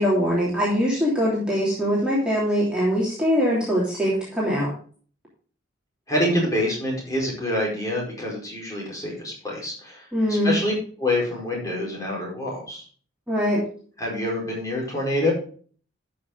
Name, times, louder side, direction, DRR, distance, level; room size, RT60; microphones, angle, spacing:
voice 1, 0.0-4.7 10.1-10.5 13.3-13.6, equal, 5° right, -7 dB, 3.1 m, -22 dB
voice 2, 6.1-10.7 11.0-12.8 14.0-15.3, left 1 dB, 20° left, -3 dB, 4.7 m, -26 dB
12.5 x 6.3 x 3.9 m, 0.43 s
head